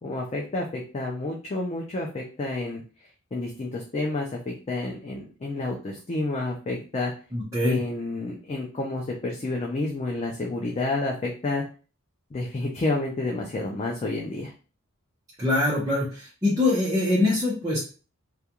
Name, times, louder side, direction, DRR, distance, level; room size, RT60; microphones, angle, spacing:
voice 1, 0.0-2.8 3.3-7.1 7.6-11.6 12.3-14.5, left 2 dB, 30° left, -2 dB, 0.4 m, -30 dB
voice 2, 7.3-7.8 15.4-17.8, left 2 dB, 15° right, -7 dB, 0.7 m, -23 dB
2.3 x 2.3 x 2.8 m, 0.35 s
head